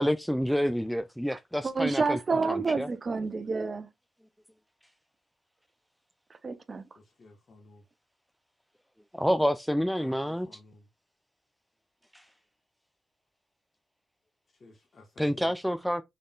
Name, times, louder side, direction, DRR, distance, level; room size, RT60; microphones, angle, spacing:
voice 1, 0.0-2.2 2.5-2.9 9.1-10.5 12.1-12.2 15.2-16.0, equal, ahead, 0.3 m, -28 dB
voice 2, 1.6-3.9 6.4-6.8, right 4 dB, 45° right, 0.6 m, -29 dB
voice 3, 6.9-7.8 10.0-10.9 14.5-15.5, left 2 dB, 50° left, 1.1 m, -55 dB
3.9 x 3.4 x 2.2 m
hypercardioid pair, 45°, 0 cm